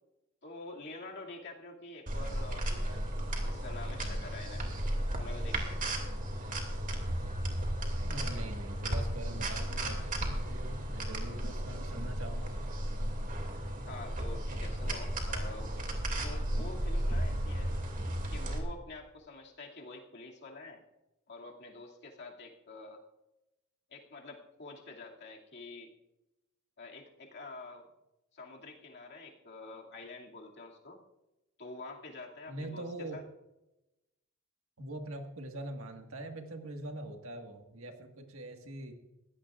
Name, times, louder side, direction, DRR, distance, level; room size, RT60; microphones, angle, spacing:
voice 1, 0.4-3.0 3.4-4.7 5.1-5.8 13.9-15.7 16.1-17.7 18.3-20.8 21.3-23.0 23.9-25.9 26.8-27.9 28.3-31.0 31.6-33.2, left 3 dB, 55° left, -1 dB, 2.4 m, -47 dB
sound 1, 2.1-18.6, right 1 dB, 40° right, 2.5 m, -34 dB
voice 2, 8.0-12.5 32.5-33.2 34.8-38.9, right 1 dB, 70° right, 4 dB, 1.7 m, -43 dB
21.0 x 16.0 x 2.5 m, 0.96 s
head